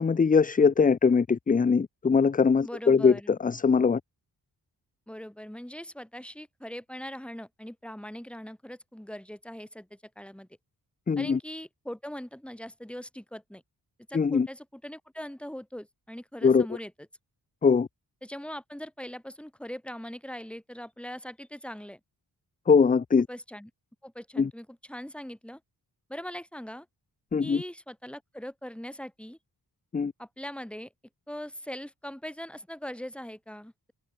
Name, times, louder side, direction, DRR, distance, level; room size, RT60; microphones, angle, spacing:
voice 1, 0.0-4.0 11.1-11.4 14.1-14.5 16.4-16.7 17.6-17.9 22.7-23.3 24.4-24.5 27.3-27.6 29.9-30.1, left 5 dB, 25° left, 0.4 m, -22 dB
voice 2, 2.6-3.4 5.1-10.5 11.2-13.6 14.1-16.9 18.2-22.0 23.3-23.7 24.0-25.6 26.1-26.9 27.4-29.4 30.2-30.9 31.3-33.9, equal, 5° left, 2.7 m, -41 dB
wide cardioid pair, 160°, 38 cm